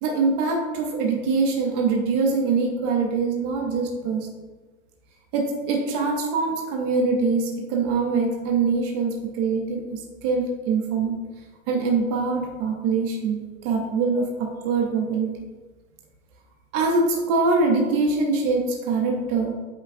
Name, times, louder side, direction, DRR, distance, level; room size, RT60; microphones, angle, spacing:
voice 1, 0.0-4.3 5.3-11.2 11.7-15.3 16.7-19.5, right 4 dB, 20° right, 1 dB, 0.4 m, -23 dB
7.4 x 5.8 x 2.5 m, 1.3 s
hypercardioid pair, 145°, 42 cm